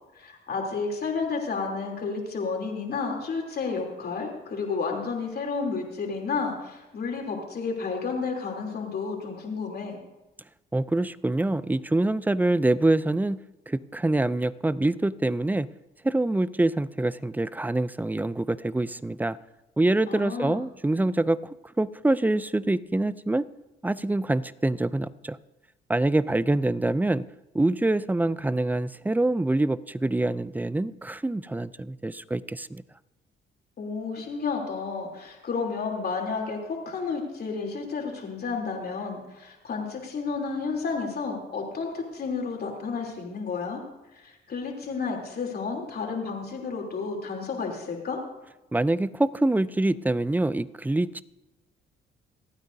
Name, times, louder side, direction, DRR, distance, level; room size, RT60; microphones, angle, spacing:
voice 1, 0.1-10.0 20.1-20.6 33.8-43.8 44.2-48.2, left 4 dB, 50° left, 1 dB, 3.2 m, -31 dB
voice 2, 10.7-13.4 13.7-15.7 16.0-19.4 19.8-23.5 23.8-25.4 25.9-27.3 27.5-32.8 48.7-51.2, right 2 dB, 10° right, 17 dB, 0.4 m, -25 dB
27.0 x 9.3 x 2.7 m, 1.0 s
cardioid pair, 90°, 20 cm